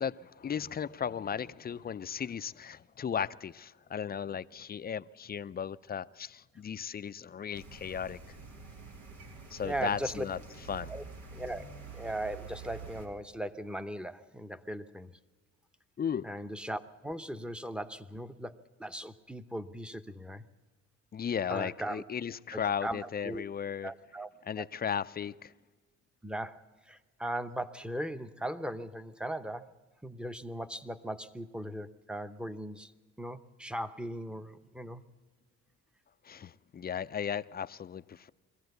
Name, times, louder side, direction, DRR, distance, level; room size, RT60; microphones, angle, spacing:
voice 1, 0.0-8.2 9.5-10.4 10.7-10.9 16.0-16.3 21.1-23.9 24.5-25.5 36.2-38.3, left 8 dB, 30° left, 0.5 m, -36 dB
sound 1, 7.5-13.1, right 4 dB, 85° right, 2.9 m, -47 dB
voice 2, 9.6-10.2 10.9-11.0 11.3-15.1 16.2-20.4 21.5-22.0 22.5-23.4 23.8-24.3 24.6-24.7 26.2-29.7 30.0-32.9 33.2-35.0, right 1 dB, 5° right, 0.8 m, -38 dB
22.0 x 15.0 x 8.0 m
cardioid pair, 90°, 30 cm